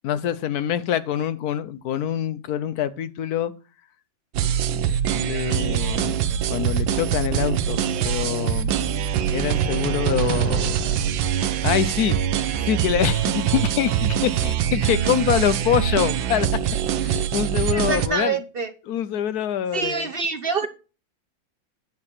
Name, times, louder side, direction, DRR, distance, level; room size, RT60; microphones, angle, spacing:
voice 1, 0.0-3.5 4.7-6.1 6.5-8.8 9.3-11.3 11.6-16.5 17.0-18.4 18.9-20.1, left 10 dB, 65° left, 1.1 m, -25 dB
sound 1, 4.3-18.1, right 9 dB, 85° right, 1.5 m, -23 dB
voice 2, 17.7-18.7 19.7-20.7, right 4 dB, 60° right, 0.5 m, -25 dB
9.7 x 6.8 x 4.3 m
omnidirectional pair, 2.1 m